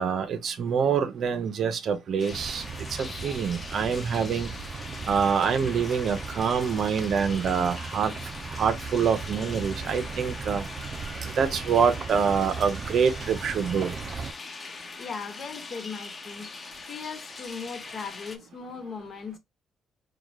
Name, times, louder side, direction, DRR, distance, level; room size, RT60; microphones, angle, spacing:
voice 1, 0.0-2.6 3.0-4.5 5.1-8.1 8.6-10.6 11.4-13.9, right 6 dB, 60° right, 0.9 m, -25 dB
sound 1, 2.2-18.4, left 4 dB, 35° left, 1.0 m, -41 dB
sound 2, 2.3-14.3, right 5 dB, 45° right, 0.6 m, -37 dB
voice 2, 14.7-16.5 16.9-19.4, left 5 dB, 55° left, 1.3 m, -38 dB
4.9 x 2.4 x 3.1 m
cardioid pair, 90°, 0 cm